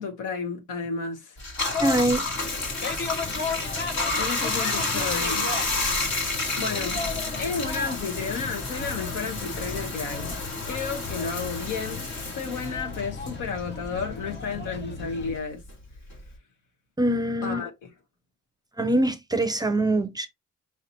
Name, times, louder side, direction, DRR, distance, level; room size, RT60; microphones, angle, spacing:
voice 1, 0.0-1.4 4.1-5.6 6.5-7.0 7.4-10.4 10.7-15.6 17.4-17.9, left 5 dB, 85° left, 1.2 m, -32 dB
Bathtub (filling or washing), 1.4-14.2 14.5-16.4, left 3 dB, 65° left, 1.8 m, -30 dB
sound 1, 1.7-15.4, left 4 dB, 35° left, 0.8 m, -35 dB
voice 2, 1.8-2.3 17.0-17.6 18.8-20.3, right 1 dB, 15° right, 0.5 m, -23 dB
5.0 x 2.9 x 2.7 m
cardioid pair, 90°, 30 cm